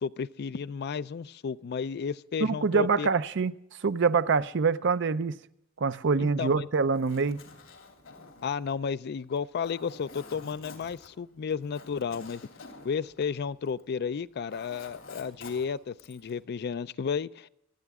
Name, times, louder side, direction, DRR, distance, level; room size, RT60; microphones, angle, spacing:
voice 1, 0.0-3.1 6.2-6.7 8.4-12.4 12.8-17.5, left 6 dB, 50° left, 0.4 m, -33 dB
voice 2, 2.4-3.5 3.8-5.4 5.8-7.4, right 4 dB, 60° right, 0.6 m, -25 dB
Zipper (clothing), 6.8-13.9 14.2-16.4, left 3 dB, 85° left, 3.0 m, -49 dB
26.0 x 9.2 x 3.6 m
head